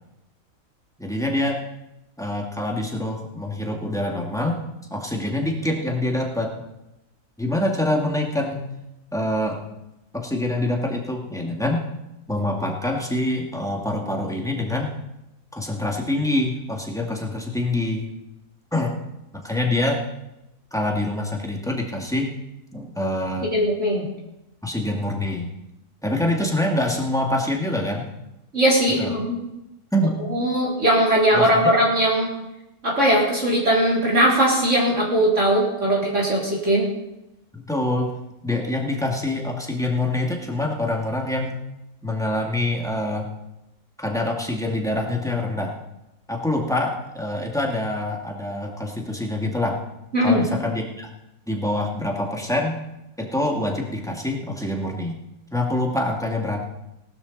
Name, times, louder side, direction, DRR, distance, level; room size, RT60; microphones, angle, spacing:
voice 1, 1.0-1.6 2.2-4.6 4.9-6.5 7.4-8.7 9.1-9.8 10.1-11.8 12.3-14.9 15.5-18.1 18.7-18.9 19.3-20.0 20.7-22.3 22.7-23.5 24.6-25.5 26.0-28.1 29.0-29.1 29.9-30.2 31.3-31.8 37.5-38.1 38.4-41.6 42.0-43.3 44.0-45.8 46.3-49.8 50.2-51.1 51.5-52.8 53.2-55.2 55.5-56.6, left 1 dB, ahead, 0 dB, 2.0 m, -25 dB
voice 2, 23.5-24.1 28.5-29.4 30.3-32.3 32.8-36.9 50.1-50.4, right 1 dB, 45° right, -4 dB, 4.0 m, -19 dB
18.5 x 12.0 x 4.1 m, 0.92 s
omnidirectional pair, 1.7 m